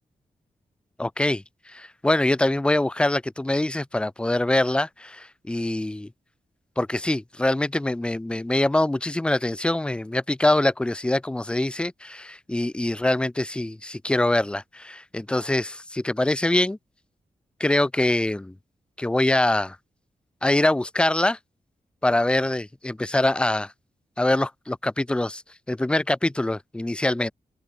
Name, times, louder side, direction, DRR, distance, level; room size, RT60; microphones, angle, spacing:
voice 1, 1.0-6.1 6.8-16.8 17.6-18.5 19.0-19.8 20.4-21.4 22.0-23.7 24.2-25.4 25.7-27.3, left 1 dB, 5° left, 0.3 m, -24 dB
open air
cardioid pair, 65°, 14 cm